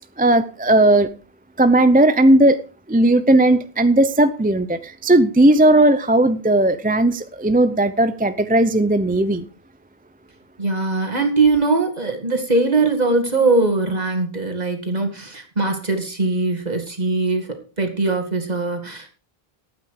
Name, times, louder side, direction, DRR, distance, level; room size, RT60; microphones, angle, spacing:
voice 1, 0.2-1.1 1.6-2.6 2.9-9.4, right 1 dB, 10° right, 11 dB, 0.5 m, -16 dB
voice 2, 10.6-19.1, right 3 dB, 40° right, 5 dB, 2.4 m, -21 dB
12.5 x 9.1 x 4.9 m, 0.36 s
omnidirectional pair, 1.0 m